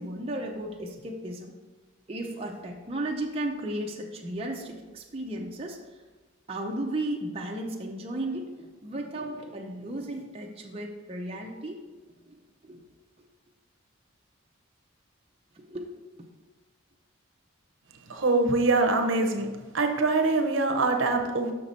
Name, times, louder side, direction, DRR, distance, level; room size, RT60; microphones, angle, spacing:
voice 1, 0.0-1.5 2.1-5.8 6.5-11.8 12.2-12.4 12.6-12.8 15.6-16.3, right 1 dB, 30° right, 0 dB, 0.6 m, -35 dB
voice 2, 18.1-19.5 19.7-21.5, right 3 dB, 70° right, 5 dB, 0.8 m, -24 dB
6.6 x 5.9 x 4.2 m, 1.3 s
head